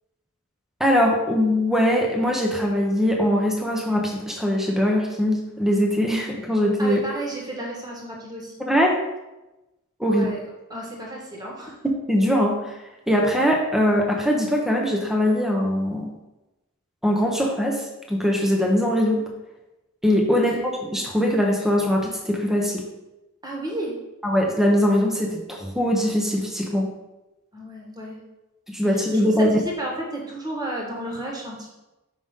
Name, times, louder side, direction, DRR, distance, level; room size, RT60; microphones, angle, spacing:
voice 1, 0.8-7.0 8.7-9.0 10.0-10.3 12.1-12.8 13.1-16.1 17.0-19.2 20.0-22.8 24.2-26.9 28.7-29.6, equal, ahead, 0 dB, 0.6 m, -21 dB
voice 2, 6.8-8.6 10.0-10.4 10.7-11.8 20.3-20.7 23.4-24.0 27.5-28.2 28.9-31.7, right 1 dB, 15° right, -2 dB, 1.3 m, -33 dB
5.4 x 4.9 x 3.6 m, 0.99 s
head